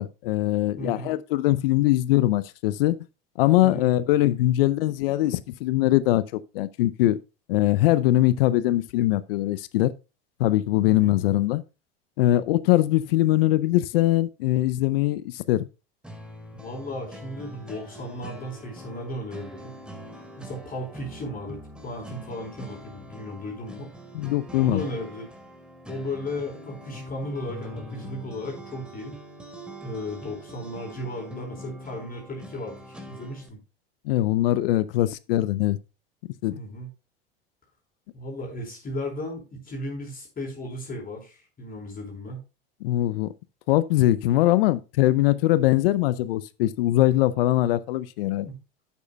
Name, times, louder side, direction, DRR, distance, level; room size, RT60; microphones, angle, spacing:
voice 1, 0.0-3.0 3.4-7.2 7.5-9.9 10.4-11.6 12.2-15.7 24.1-24.8 34.0-35.8 36.4-36.6 42.8-43.3 43.7-48.5, left 15 dB, 70° left, 0.7 m, -22 dB
voice 2, 0.8-1.1 3.6-3.9 10.9-11.1 16.5-19.7 20.4-23.9 24.6-25.3 25.9-29.2 29.8-33.6 36.5-36.9 38.1-42.4 48.4-48.6, left 1 dB, 30° left, 4.3 m, -35 dB
sound 1, 16.0-33.5, equal, 5° right, 2.3 m, -43 dB
11.5 x 8.3 x 2.3 m
hypercardioid pair, 85°, 30 cm